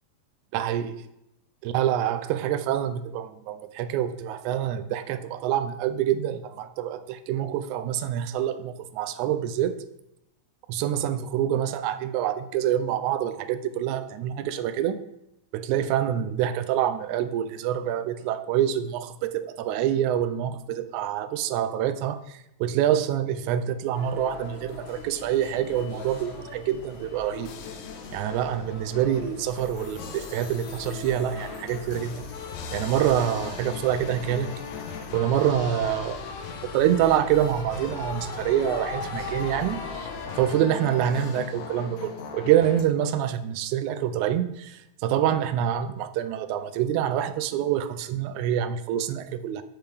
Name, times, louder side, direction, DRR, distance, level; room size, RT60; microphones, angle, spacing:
voice 1, 0.5-0.9 1.6-9.8 10.7-15.0 15.5-22.2 22.6-27.5 28.1-32.2 32.7-34.5 35.1-36.2 36.7-40.1 40.4-44.7 45.0-49.6, right 10 dB, 85° right, 10 dB, 1.9 m, -26 dB
sound 1, 23.9-40.5, left 4 dB, 55° left, 1.4 m, -40 dB
sound 2, 27.5-42.8, left 6 dB, 85° left, 2.2 m, -39 dB
7.6 x 6.5 x 3.5 m, 0.86 s
omnidirectional pair, 3.3 m